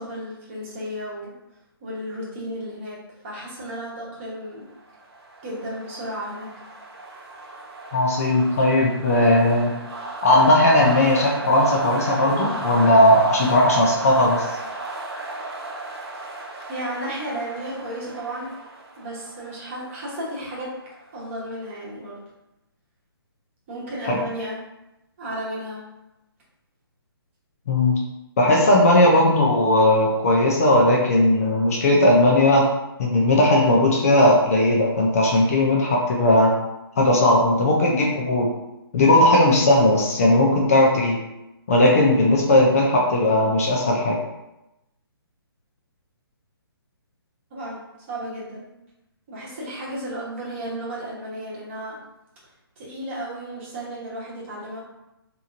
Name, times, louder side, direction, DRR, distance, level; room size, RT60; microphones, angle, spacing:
voice 1, 0.0-1.3 1.8-3.0 3.2-4.7 5.4-6.5 16.7-18.5 19.0-20.7 21.1-22.2 23.7-24.6 25.2-25.8 29.1-29.2 47.5-47.8 48.1-48.6 49.3-52.0 52.8-54.8, right 1 dB, 30° right, -6 dB, 1.1 m, -33 dB
sound 1, 4.7-21.4, right 2 dB, 85° right, 0.7 m, -35 dB
voice 2, 7.9-9.7 10.2-14.4 24.1-24.2 27.7-28.0 28.4-32.7 33.0-36.5 37.0-38.5 38.9-41.2 41.7-44.2, left 1 dB, 35° left, -2 dB, 0.5 m, -17 dB
2.9 x 2.6 x 2.5 m, 0.93 s
hypercardioid pair, 160°, 13 cm